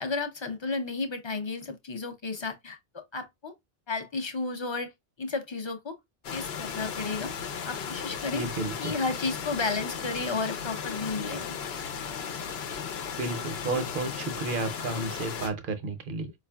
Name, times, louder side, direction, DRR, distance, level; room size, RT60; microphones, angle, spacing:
voice 1, 0.0-3.5 3.9-4.9 5.2-5.9 6.3-7.3 7.6-8.4 8.8-11.4, left 3 dB, 35° left, 0.6 m, -32 dB
sound 1, 6.2-15.5, left 7 dB, 80° left, 0.9 m, -36 dB
voice 2, 8.3-8.9 13.2-16.3, right 3 dB, 60° right, 0.8 m, -32 dB
4.9 x 2.4 x 2.2 m
omnidirectional pair, 1.0 m